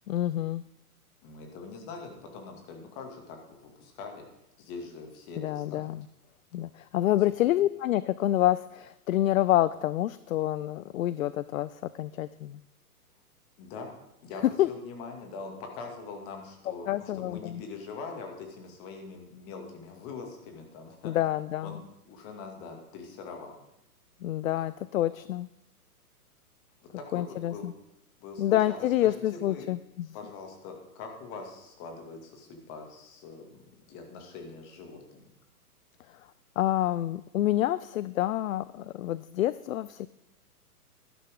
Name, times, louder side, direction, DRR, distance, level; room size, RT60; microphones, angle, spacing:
voice 1, 0.1-0.6 5.4-6.1 6.5-12.6 14.6-14.7 16.9-17.6 21.0-21.8 24.2-25.5 27.1-27.7 28.4-30.1 36.6-40.1, left 13 dB, 60° left, 17 dB, 0.5 m, -28 dB
voice 2, 1.2-4.2 4.6-5.9 7.1-7.2 13.6-13.9 14.2-21.1 21.6-23.6 24.5-24.7 27.0-27.6 28.2-29.7 30.1-33.6 33.9-35.3, left 4 dB, 30° left, 3 dB, 2.4 m, -43 dB
12.0 x 12.0 x 3.8 m, 0.89 s
hypercardioid pair, 135°, 46 cm